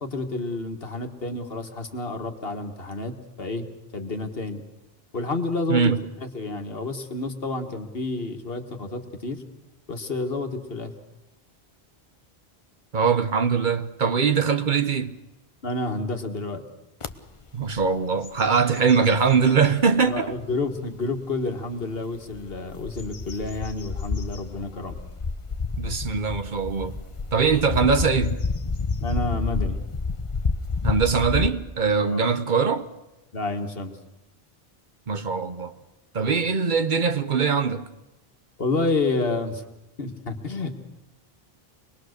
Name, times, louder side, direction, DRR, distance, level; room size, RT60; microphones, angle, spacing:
voice 1, 0.0-3.7 3.9-4.6 5.1-5.9 6.2-9.4 9.9-10.9 15.6-16.6 20.0-24.9 29.0-29.8 32.0-32.3 33.3-33.9 38.6-39.6 40.0-40.7, left 2 dB, 70° left, 1.9 m, -29 dB
voice 2, 5.7-6.0 12.9-15.2 17.5-20.4 25.8-27.0 27.3-28.4 30.8-32.9 35.1-35.7 36.1-37.8, right 5 dB, 50° right, 1.0 m, -22 dB
sound 1, 17.0-17.1 17.6-17.9 18.2-19.7 20.3-20.4 22.1-31.5, left 4 dB, 35° left, 0.9 m, -29 dB
25.0 x 20.5 x 6.6 m
omnidirectional pair, 1.0 m